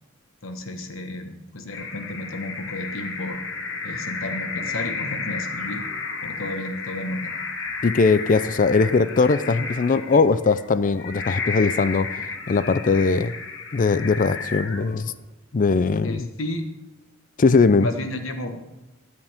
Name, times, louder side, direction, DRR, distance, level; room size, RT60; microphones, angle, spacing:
voice 1, 0.4-3.4 3.8-5.8 6.2-7.3 16.0-16.6 17.8-18.6, left 1 dB, 75° left, 6 dB, 1.5 m, -32 dB
sound 1, 1.7-15.2, left 4 dB, 60° left, 1.7 m, -33 dB
voice 2, 7.8-13.3 13.7-15.1 15.5-16.3 17.4-17.9, left 4 dB, 40° left, 15 dB, 0.4 m, -20 dB
16.5 x 9.8 x 3.6 m, 1.0 s
head